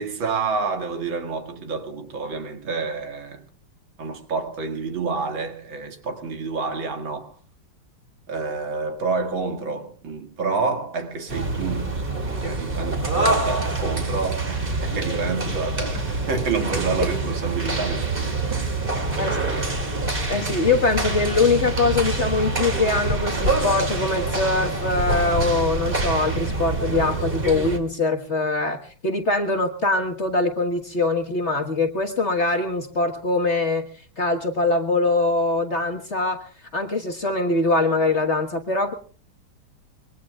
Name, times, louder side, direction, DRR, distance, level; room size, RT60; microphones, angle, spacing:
voice 1, 0.0-3.4 4.0-7.3 8.3-18.8 19.2-19.7, right 4 dB, 70° right, 2.7 m, -29 dB
sound 1, 11.3-27.8, right 2 dB, 25° right, 2.6 m, -26 dB
voice 2, 20.3-28.8 29.0-33.9 34.2-36.4 36.7-38.9, left 3 dB, 35° left, 1.5 m, -23 dB
26.0 x 22.0 x 2.4 m
omnidirectional pair, 2.2 m